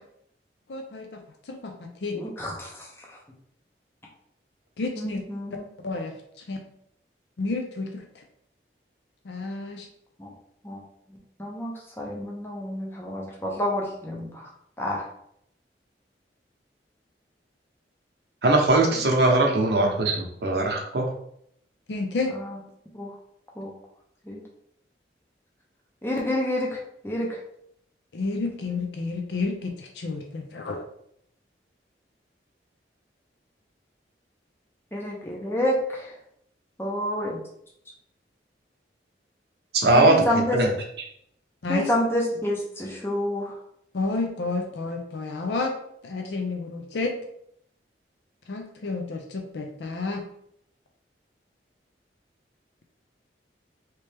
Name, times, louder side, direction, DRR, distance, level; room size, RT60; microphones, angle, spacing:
voice 1, 0.7-2.2 4.8-5.2 5.8-6.1 6.5-6.6 7.4-8.0 9.2-9.9 21.9-22.3 28.1-30.8 41.6-41.9 43.9-45.7 46.0-47.1 48.5-50.2, left 3 dB, 75° left, 3 dB, 0.5 m, -30 dB
voice 2, 2.1-2.7 5.0-5.6 10.2-10.3 10.6-10.8 11.4-14.4 14.8-15.0 19.1-19.6 19.8-19.9 22.4-22.5 22.9-23.1 23.6-23.7 24.3-24.4 26.0-26.8 27.0-27.4 34.9-36.1 36.8-37.4 39.9-40.6 41.7-43.5, left 1 dB, 15° left, -2 dB, 0.6 m, -28 dB
voice 3, 18.4-21.1 39.7-40.2 40.5-40.7 41.0-41.1, right 2 dB, 65° right, 1 dB, 0.7 m, -20 dB
3.2 x 2.9 x 3.3 m, 0.72 s
head